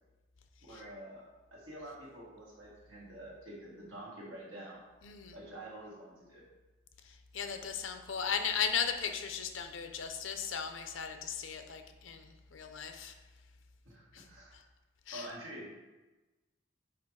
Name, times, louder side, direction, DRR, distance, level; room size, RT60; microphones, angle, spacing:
voice 1, 0.6-1.2 1.5-4.8 5.3-6.4 13.9-14.6 15.1-15.7, right 1 dB, 85° right, -4 dB, 1.9 m, -47 dB
voice 2, 5.0-5.4 7.3-13.1 14.1-14.2 15.1-15.3, left 7 dB, 70° left, 6 dB, 0.6 m, -36 dB
5.0 x 4.2 x 4.7 m, 1.2 s
head